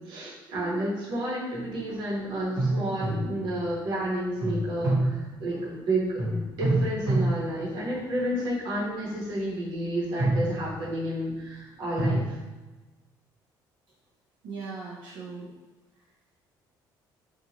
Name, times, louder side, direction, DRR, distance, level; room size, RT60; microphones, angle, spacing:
voice 1, 0.1-12.4, right 1 dB, 65° right, -6 dB, 1.0 m, -31 dB
sound 1, 1.5-1.9 2.6-3.7 4.4-5.8 6.2-8.5 9.0-9.3 10.0-11.1 12.0-12.3, right 1 dB, 30° right, 0.9 m, -28 dB
voice 2, 14.4-15.5, right 4 dB, 90° right, -7 dB, 0.6 m, -38 dB
2.7 x 2.4 x 2.8 m, 1.2 s
cardioid pair, 175°, 8 cm